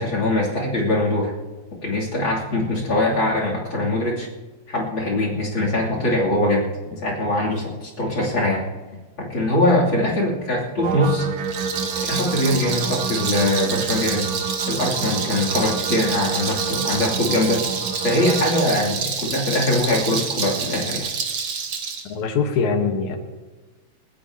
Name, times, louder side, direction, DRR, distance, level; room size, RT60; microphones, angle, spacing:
voice 1, 0.0-1.3 1.8-4.3 4.7-8.6 9.2-11.3 12.0-14.3 14.7-17.6 18.0-21.1, left 1 dB, 40° left, -2 dB, 3.4 m, -22 dB
sound 1, 10.8-18.6, right 5 dB, 85° right, 1.1 m, -29 dB
Rattle, 11.4-22.0, right 6 dB, 55° right, 1.8 m, -28 dB
voice 2, 22.0-23.2, left 5 dB, 80° left, 4 dB, 2.7 m, -22 dB
29.0 x 10.0 x 2.8 m, 1.2 s
omnidirectional pair, 3.3 m